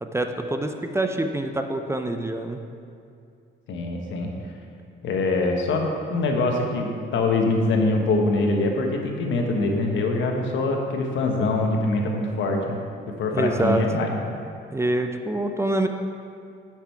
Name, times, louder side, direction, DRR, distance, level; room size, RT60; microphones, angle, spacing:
voice 1, 0.0-2.6 13.3-13.8 14.7-15.9, right 2 dB, 15° right, 6 dB, 0.5 m, -25 dB
voice 2, 3.7-4.3 5.0-12.8 13.1-14.1, left 2 dB, 75° left, 2 dB, 1.2 m, -24 dB
8.4 x 6.0 x 4.5 m, 2.4 s
cardioid pair, 90°, 20 cm